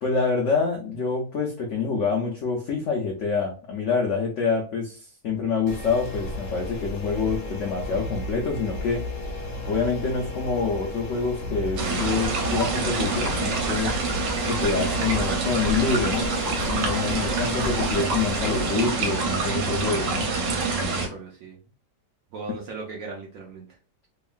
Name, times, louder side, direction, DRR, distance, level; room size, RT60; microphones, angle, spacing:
voice 1, 0.0-9.0 9.7-14.0 14.5-16.3 16.7-20.3, left 5 dB, 85° left, 0 dB, 0.6 m, -26 dB
sound 1, 5.7-18.7, left 2 dB, 60° left, 0.9 m, -34 dB
sound 2, 11.8-21.1, right 4 dB, 85° right, 1.3 m, -26 dB
voice 2, 17.0-17.4 20.7-21.6 22.3-23.8, right 3 dB, 70° right, 0 dB, 0.8 m, -38 dB
2.8 x 2.4 x 2.3 m, 0.37 s
omnidirectional pair, 1.9 m